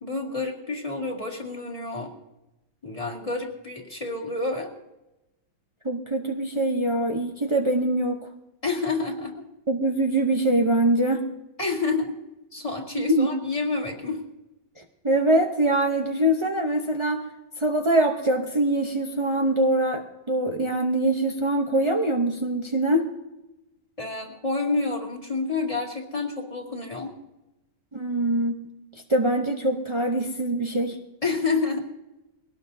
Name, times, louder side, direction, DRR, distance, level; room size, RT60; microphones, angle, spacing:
voice 1, 0.0-2.1 2.8-4.7 8.6-9.5 11.6-12.2 12.5-14.2 24.0-27.1 31.2-31.8, left 3 dB, 20° left, 0 dB, 2.2 m, -29 dB
voice 2, 5.8-8.2 9.7-11.3 12.9-13.3 14.8-17.2 17.6-23.1 27.9-28.6 29.1-31.0, right 1 dB, 40° right, 2 dB, 0.4 m, -23 dB
22.0 x 18.0 x 2.7 m, 0.95 s
omnidirectional pair, 2.0 m